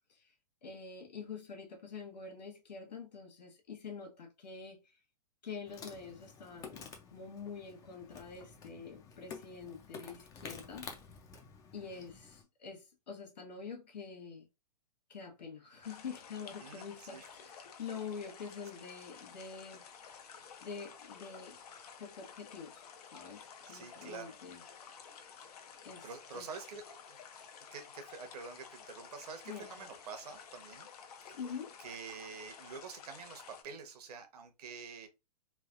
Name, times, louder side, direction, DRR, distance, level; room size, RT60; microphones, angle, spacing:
voice 1, 0.6-4.8 5.4-6.8 7.1-10.9 11.7-14.5 15.1-19.9 20.6-21.6 22.0-22.8 23.1-24.6 25.8-26.1 26.3-26.4 29.4-29.9 31.3-31.7, left 5 dB, 85° left, 1.1 m, -46 dB
Insect, 5.7-12.4, left 5 dB, 15° left, 0.4 m, -51 dB
voice 2, 11.7-12.0 16.4-17.3 23.7-24.4 26.0-27.2 27.7-30.9 31.3-31.4 31.8-35.1, right 5 dB, 70° right, 0.9 m, -47 dB
sound 1, 15.8-33.6, left 7 dB, 65° left, 0.7 m, -53 dB
3.2 x 2.3 x 2.4 m
hypercardioid pair, 130°, 21 cm